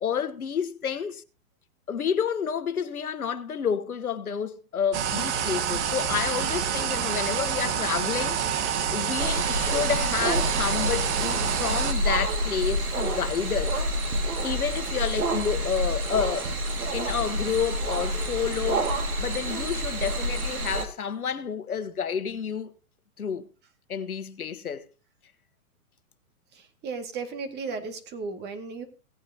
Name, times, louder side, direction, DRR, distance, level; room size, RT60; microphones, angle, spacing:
voice 1, 0.0-1.2 1.9-13.8 14.4-16.5 16.9-22.7 23.2-23.5 23.9-24.9, left 7 dB, 90° left, 1.2 m, -30 dB
sound 1, 4.9-11.9, right 8 dB, 55° right, 1.5 m, -27 dB
sound 2, 9.2-20.9, right 1 dB, 85° right, 2.2 m, -28 dB
voice 2, 26.5-28.8, right 4 dB, 25° right, 2.0 m, -35 dB
18.0 x 9.0 x 2.8 m
hypercardioid pair, 125°, 42 cm